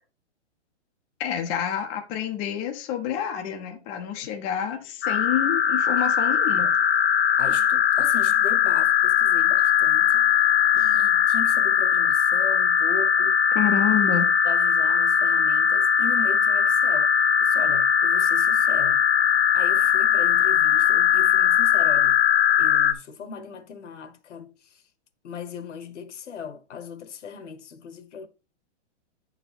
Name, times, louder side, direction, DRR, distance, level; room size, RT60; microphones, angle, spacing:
voice 1, 1.2-6.7 13.5-14.3, left 10 dB, 20° left, 0.8 m, -28 dB
sound 1, 5.0-22.9, left 8 dB, 60° left, 0.9 m, -20 dB
voice 2, 7.4-10.3 10.7-13.4 14.4-17.1 17.4-19.0 19.5-22.2 22.6-24.5 25.2-28.3, left 6 dB, 75° left, 1.4 m, -38 dB
9.0 x 4.6 x 4.3 m
hypercardioid pair, 160°, 36 cm